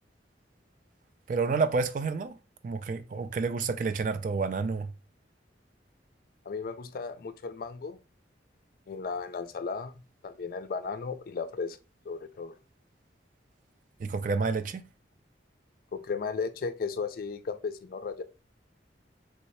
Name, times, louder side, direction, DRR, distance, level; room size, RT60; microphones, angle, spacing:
voice 1, 1.3-2.4 2.6-4.9 14.0-14.8, right 4 dB, 45° right, 0.3 m, -29 dB
voice 2, 6.5-8.0 8.9-11.8 12.1-12.5 15.9-18.2, left 5 dB, 50° left, 0.3 m, -35 dB
3.2 x 2.7 x 3.1 m
head